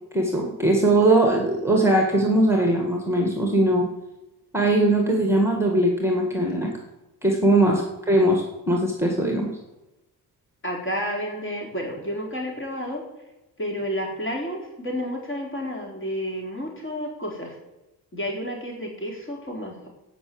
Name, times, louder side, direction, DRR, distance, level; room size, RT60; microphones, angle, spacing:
voice 1, 0.1-3.9 4.5-6.7 7.2-9.5, right 1 dB, 5° right, 1 dB, 2.0 m, -20 dB
voice 2, 10.6-13.0 13.6-17.6 18.1-19.9, equal, 30° left, -1 dB, 4.1 m, -31 dB
17.0 x 6.1 x 7.9 m, 0.98 s
cardioid pair, 135°, 38 cm